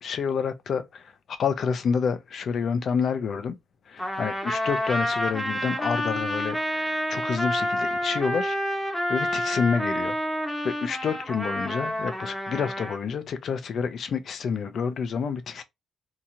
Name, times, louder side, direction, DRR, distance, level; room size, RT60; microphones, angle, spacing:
voice 1, 0.0-3.6 3.9-8.6 9.1-10.2 10.6-15.6, left 6 dB, 60° left, 0.5 m, -28 dB
Trumpet, 4.0-13.0, equal, 5° left, 0.8 m, -28 dB
2.8 x 2.3 x 2.7 m
cardioid pair, 90°, 0 cm